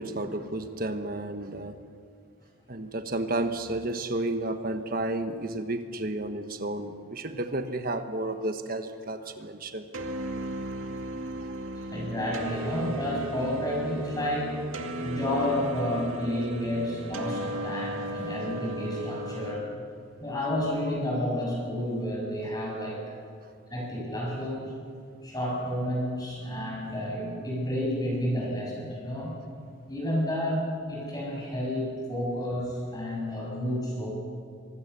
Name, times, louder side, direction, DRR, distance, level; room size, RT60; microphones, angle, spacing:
voice 1, 0.0-1.8 2.7-9.9, right 2 dB, 45° right, 7 dB, 1.3 m, -32 dB
sound 1, 9.9-19.5, right 1 dB, 85° right, 2.2 m, -35 dB
voice 2, 11.9-14.6 15.0-19.6 20.2-23.0 23.7-24.7 25.2-29.3 29.9-34.1, left 1 dB, 20° left, -3 dB, 7.3 m, -30 dB
25.0 x 20.0 x 7.0 m, 2.2 s
head